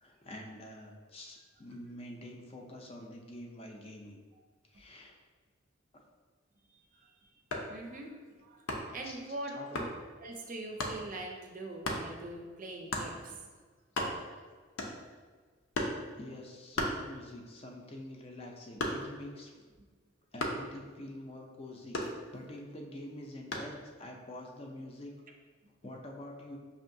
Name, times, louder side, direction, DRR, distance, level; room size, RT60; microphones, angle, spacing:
voice 1, 0.0-4.2 4.7-5.2 8.3-8.4 9.0-9.2 9.5-9.9 16.2-19.6 20.3-22.0 22.3-25.1 25.8-26.6, left 1 dB, 30° left, 1 dB, 0.4 m, -46 dB
voice 2, 7.0-7.3 7.7-8.1 8.4-8.6 8.9-9.9 10.2-13.4, right 2 dB, 45° right, 1 dB, 0.5 m, -42 dB
sound 1, 7.4-7.8 8.7-9.0 9.7-10.0 10.8-11.0 11.8-12.1 12.9-13.1 13.6-13.7 13.8-14.4 14.8-15.2 15.7-16.1 16.7-17.5 17.9-19.3 20.4-20.7 21.9-22.6 23.5-23.8, left 1 dB, 90° left, 0.6 m, -35 dB
5.2 x 2.7 x 2.6 m, 1.4 s
head